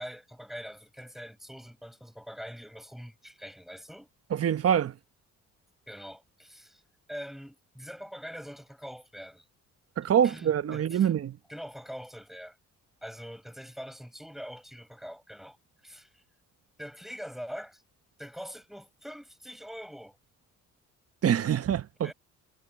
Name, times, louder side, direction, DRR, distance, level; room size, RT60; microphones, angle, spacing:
voice 1, 0.0-4.1 5.9-6.8 7.1-9.5 10.2-11.1 11.5-12.6 13.0-15.6 15.8-16.2 16.8-17.8 18.2-20.2 22.0-22.1, equal, ahead, 7.5 m, -43 dB
voice 2, 4.3-4.9 10.0-11.3 21.2-22.1, right 9 dB, 50° right, 1.1 m, -25 dB
cardioid pair, 90°, 30 cm